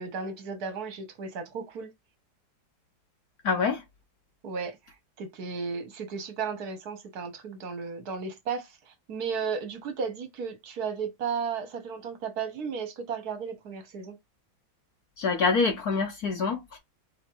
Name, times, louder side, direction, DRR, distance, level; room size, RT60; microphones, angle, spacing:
voice 1, 0.0-1.9 4.4-14.2, right 5 dB, 55° right, 1.6 m, -34 dB
voice 2, 3.4-3.8 15.2-16.8, left 4 dB, 60° left, 1.1 m, -26 dB
5.2 x 2.9 x 3.0 m
omnidirectional pair, 2.2 m